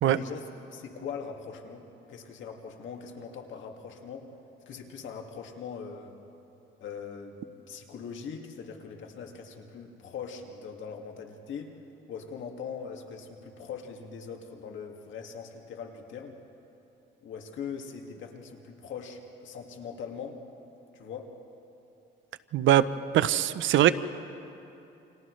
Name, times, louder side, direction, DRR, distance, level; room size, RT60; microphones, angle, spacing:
voice 1, 0.0-4.3 4.7-6.1 6.8-7.4 7.7-11.8 12.1-16.4 17.2-20.4 20.9-21.3, left 6 dB, 75° left, 2 dB, 2.1 m, -41 dB
voice 2, 22.5-22.9 23.1-23.9, right 12 dB, 75° right, 14 dB, 0.7 m, -21 dB
29.5 x 27.5 x 3.2 m, 2.8 s
cardioid pair, 90°, 20 cm